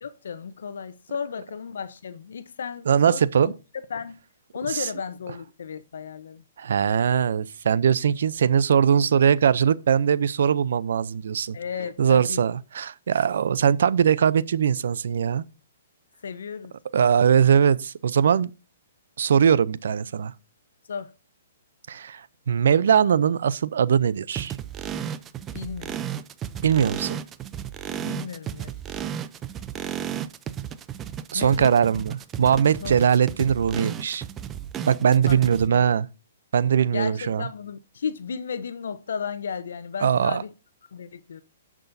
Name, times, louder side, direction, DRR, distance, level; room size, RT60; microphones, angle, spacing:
voice 1, 0.0-3.5 3.9-4.2 4.5-6.4 11.5-12.4 16.2-16.7 20.9-21.1 25.5-26.0 28.0-28.8 31.3-31.7 32.8-32.9 35.2-35.4 35.7-35.9 36.9-40.5 40.9-41.4, left 6 dB, 75° left, 0.8 m, -34 dB
voice 2, 2.9-3.5 4.7-4.8 6.6-11.6 12.0-15.4 16.9-18.5 19.2-20.3 21.9-22.2 22.5-24.5 26.6-27.2 31.3-34.2 34.9-36.1 36.5-37.5 40.0-40.4, right 8 dB, 70° right, 0.6 m, -21 dB
sound 1, 24.3-35.7, right 9 dB, 20° right, 0.6 m, -34 dB
17.5 x 6.1 x 2.7 m
hypercardioid pair, 140°, 0 cm